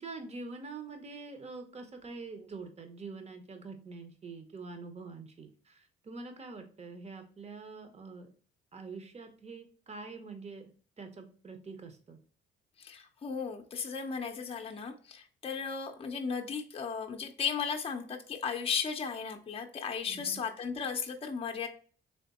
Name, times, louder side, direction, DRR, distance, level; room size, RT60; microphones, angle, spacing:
voice 1, 0.0-8.3 8.7-10.7 11.0-12.2 20.1-20.4, right 4 dB, 35° right, 6 dB, 0.9 m, -45 dB
voice 2, 12.8-21.7, left 6 dB, 30° left, 4 dB, 0.6 m, -35 dB
3.5 x 3.3 x 4.1 m, 0.43 s
cardioid pair, 90°, 20 cm